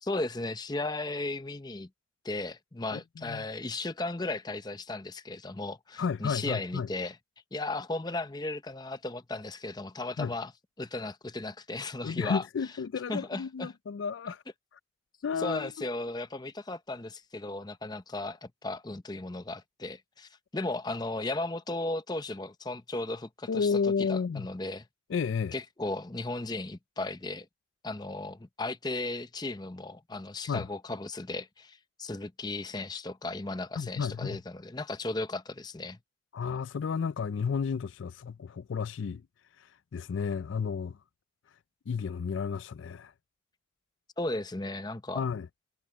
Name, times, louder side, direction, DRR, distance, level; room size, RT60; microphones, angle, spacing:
voice 1, 0.0-1.9 2.2-7.2 7.5-10.5 10.8-12.4 13.1-13.7 15.4-23.7 24.0-24.9 25.5-27.5 27.8-36.0 44.2-45.3, left 2 dB, 20° left, 0.7 m, -35 dB
voice 2, 2.9-3.5 6.0-6.9 10.2-10.3 12.0-14.4 15.2-15.7 23.5-24.5 25.1-25.5 30.5-30.7 33.8-34.4 36.3-39.2 39.6-41.0 41.9-43.1 45.1-45.5, left 5 dB, 75° left, 0.4 m, -32 dB
head